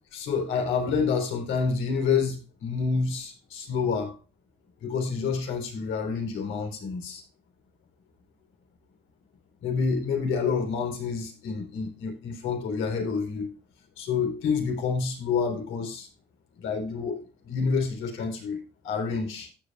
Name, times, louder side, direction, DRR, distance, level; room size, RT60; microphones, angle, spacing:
voice 1, 0.1-4.1 4.8-7.2 9.6-13.5 14.0-16.1 16.6-18.6 18.8-19.5, left 5 dB, 90° left, 3.8 m, -28 dB
14.5 x 7.9 x 2.4 m
cardioid pair, 90°, 20 cm